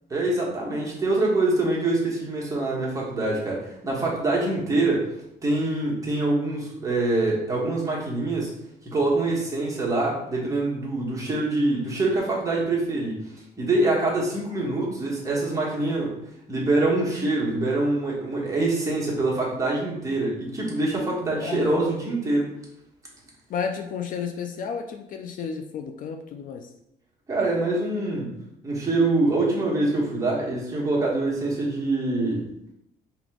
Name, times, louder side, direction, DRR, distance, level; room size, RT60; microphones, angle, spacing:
voice 1, 0.1-5.1 5.4-8.5 8.8-13.2 13.6-16.1 16.5-22.5 27.3-28.3 28.6-32.5, right 2 dB, 20° right, -5 dB, 1.3 m, -25 dB
voice 2, 21.4-21.9 23.5-26.7, left 6 dB, 55° left, 5 dB, 0.4 m, -32 dB
3.5 x 2.9 x 3.6 m, 0.79 s
cardioid pair, 110°, 17 cm